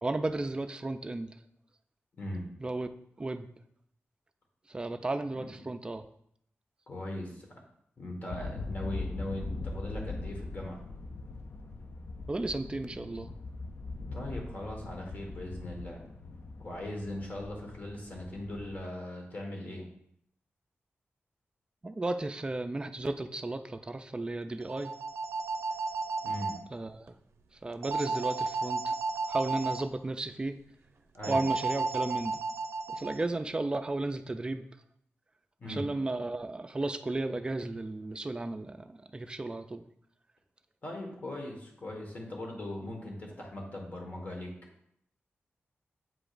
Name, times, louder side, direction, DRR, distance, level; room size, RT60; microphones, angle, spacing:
voice 1, 0.0-1.4 2.6-2.9 3.2-3.5 4.7-6.0 12.3-13.3 21.8-24.9 26.7-27.2 27.6-29.0 29.3-30.6 31.2-32.4 32.9-34.6 35.6-39.8, right 2 dB, 20° right, 8 dB, 0.4 m, -34 dB
voice 2, 2.1-2.5 5.3-5.4 6.9-7.5 8.0-10.8 14.1-16.0 16.6-19.9 26.2-26.5 31.1-31.4 35.6-35.8 40.8-44.5, left 1 dB, 40° left, 0 dB, 1.5 m, -39 dB
sound 1, 8.3-18.8, left 3 dB, 55° left, 0.5 m, -41 dB
sound 2, 24.6-26.6 27.8-29.8 31.2-33.2, right 4 dB, 85° right, 0.4 m, -33 dB
7.7 x 4.9 x 2.5 m, 0.72 s
wide cardioid pair, 125°, 4 cm